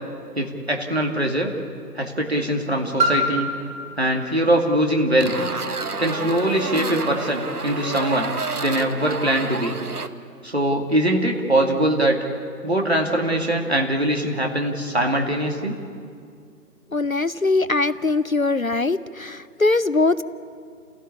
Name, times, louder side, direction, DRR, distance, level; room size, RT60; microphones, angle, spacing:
voice 1, 0.3-1.5 2.0-3.5 4.0-5.3 6.0-8.3 8.6-9.7 10.4-12.2 12.6-15.7, right 1 dB, 40° right, 1 dB, 2.4 m, -22 dB
Piano, 3.0-8.4 9.2-9.3, right 1 dB, 85° right, 6.0 m, -29 dB
sound 1, 5.2-10.1, right 3 dB, 65° right, 1.3 m, -29 dB
voice 2, 16.9-20.2, left 3 dB, 55° left, 15 dB, 0.6 m, -21 dB
29.0 x 17.0 x 8.5 m, 2.3 s
figure-of-eight pair, 175°, 49 cm